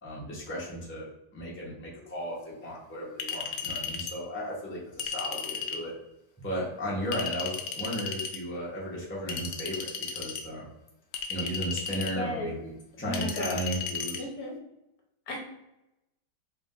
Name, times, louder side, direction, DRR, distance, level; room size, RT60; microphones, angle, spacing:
voice 1, 0.0-1.1 1.3-5.9 6.4-10.6 11.3-12.5 13.0-14.2, equal, 10° left, -5 dB, 0.8 m, -35 dB
Chink clink, 3.2-4.2 5.0-5.8 7.1-8.4 9.3-10.4 11.1-12.2 13.1-14.2, left 5 dB, 80° left, 0.6 m, -35 dB
voice 2, 12.2-12.5 13.0-13.5 14.2-14.5 15.3-15.4, left 2 dB, 65° left, 0 dB, 1.2 m, -34 dB
3.6 x 2.6 x 3.7 m, 0.90 s
omnidirectional pair, 1.9 m